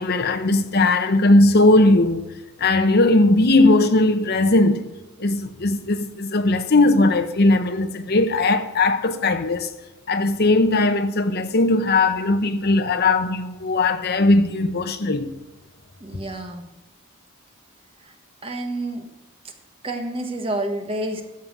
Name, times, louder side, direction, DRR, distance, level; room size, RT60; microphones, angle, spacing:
voice 1, 0.0-2.3 2.6-4.8 5.2-9.7 10.1-15.3, left 2 dB, 45° left, 0.8 m, -18 dB
voice 2, 16.0-16.6 18.4-19.0 19.8-21.2, right 1 dB, 25° right, 1.4 m, -28 dB
13.5 x 7.4 x 6.2 m
head